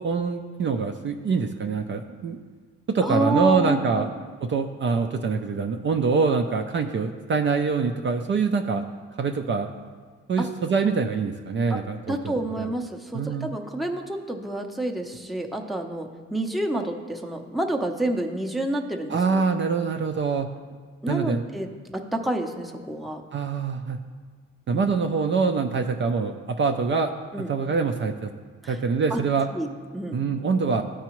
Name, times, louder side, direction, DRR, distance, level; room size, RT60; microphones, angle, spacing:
voice 1, 0.0-2.4 2.9-4.1 4.4-8.8 9.2-9.7 10.3-12.7 13.1-13.5 19.1-20.5 21.1-21.4 23.3-24.0 24.7-27.1 27.4-28.3 28.7-29.5 30.1-30.8, right 5 dB, 40° right, 5 dB, 0.5 m, -24 dB
voice 2, 3.0-4.1 10.4-10.5 11.7-11.8 12.1-19.4 21.0-21.7 21.9-23.2 24.7-24.9 27.3-27.5 28.6-28.8 29.1-29.2 29.5-30.2, right 1 dB, ahead, 2 dB, 0.7 m, -29 dB
13.5 x 4.7 x 3.0 m, 1.5 s
cardioid pair, 90°, 30 cm